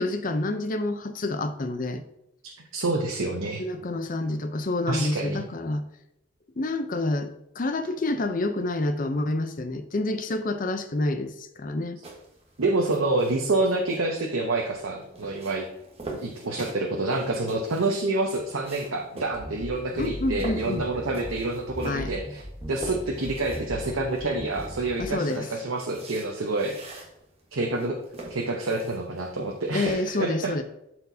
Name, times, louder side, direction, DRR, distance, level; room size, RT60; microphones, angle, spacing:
voice 1, 0.0-2.0 3.6-5.9 6.6-12.0 20.0-20.8 21.8-22.1 25.0-25.5 29.7-30.6, left 2 dB, 40° left, 8 dB, 0.6 m, -28 dB
voice 2, 2.4-3.6 4.9-5.4 12.6-15.7 16.2-22.4 22.7-26.8 27.5-28.0 28.3-30.5, right 2 dB, 90° right, 2 dB, 0.9 m, -27 dB
sound 1, 12.0-29.9, right 2 dB, 30° right, 1.3 m, -44 dB
sound 2, 19.3-25.1, equal, 15° right, 1.1 m, -38 dB
12.0 x 4.4 x 2.7 m, 0.84 s
head